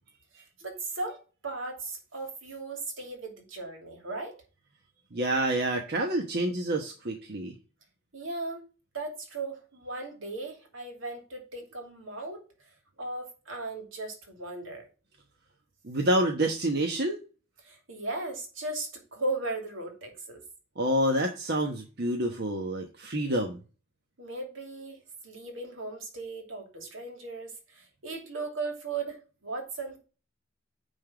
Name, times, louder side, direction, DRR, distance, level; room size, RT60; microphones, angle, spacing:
voice 1, 0.3-4.4 8.1-8.7 8.9-12.5 13.0-14.9 17.6-20.4 24.2-30.0, right 3 dB, 80° right, 2.6 m, -37 dB
voice 2, 5.1-7.5 15.8-17.2 20.8-23.6, right 1 dB, 55° right, 1.2 m, -28 dB
9.6 x 3.6 x 4.9 m
head